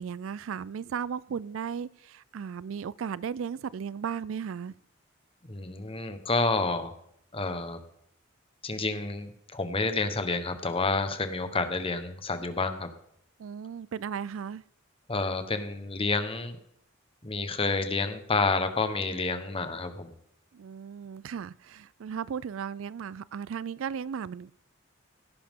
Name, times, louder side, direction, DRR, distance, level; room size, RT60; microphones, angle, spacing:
voice 1, 0.0-4.7 13.4-14.6 20.5-24.5, right 7 dB, 70° right, 0.4 m, -36 dB
voice 2, 5.5-6.9 7.3-7.8 8.6-12.9 15.1-16.6 17.2-20.1, left 3 dB, 25° left, 1.1 m, -29 dB
17.0 x 10.0 x 3.7 m
head